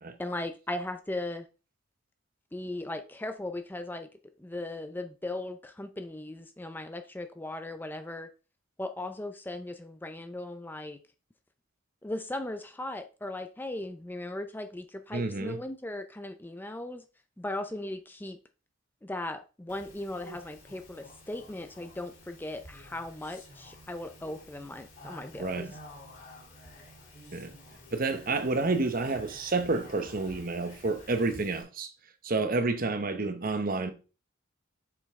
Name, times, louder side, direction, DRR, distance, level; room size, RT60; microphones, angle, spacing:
voice 1, 0.2-1.5 2.5-4.1 4.4-8.3 8.8-11.0 12.0-17.1 17.4-18.4 19.0-25.8, left 1 dB, 10° left, 0.4 m, -38 dB
voice 2, 15.1-15.6 25.4-25.7 27.3-27.5 27.9-31.9 32.2-33.9, right 3 dB, 45° right, 0.9 m, -29 dB
Speech, 19.7-31.6, left 1 dB, 40° left, 2.5 m, -51 dB
7.1 x 5.3 x 3.6 m
head